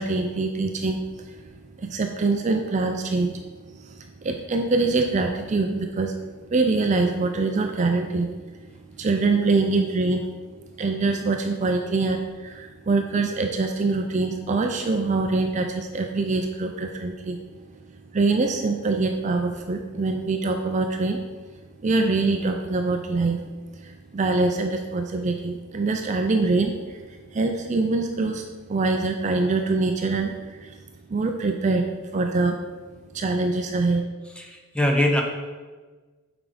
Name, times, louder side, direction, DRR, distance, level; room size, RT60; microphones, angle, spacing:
voice 1, 0.0-1.4 1.8-3.4 3.7-6.2 6.5-8.4 9.0-10.3 10.8-17.4 18.1-21.2 21.8-23.4 23.7-30.8 31.1-31.8 32.1-32.6 33.1-34.0, right 3 dB, 35° right, 4 dB, 0.4 m, -24 dB
voice 2, 34.4-35.2, left 1 dB, 5° left, 1 dB, 0.7 m, -22 dB
8.0 x 5.0 x 3.4 m, 1.3 s
head